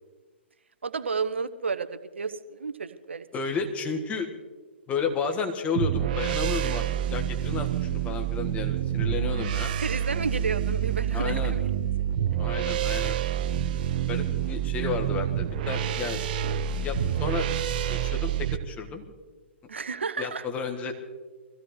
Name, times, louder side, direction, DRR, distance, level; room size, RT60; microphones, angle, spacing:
voice 1, 0.8-3.3 9.8-11.9 19.7-20.4, right 5 dB, 75° right, 10 dB, 1.0 m, -32 dB
voice 2, 3.3-4.3 4.9-6.8 7.1-9.8 11.1-11.5 12.4-13.2 14.1-16.2 16.8-17.5 17.9-19.0 20.2-20.9, left 5 dB, 20° left, 4 dB, 1.6 m, -32 dB
sound 1, 5.7-18.6, right 10 dB, 45° right, 0.8 m, -28 dB
24.5 x 15.5 x 3.2 m, 1.4 s
figure-of-eight pair, 120°, 7 cm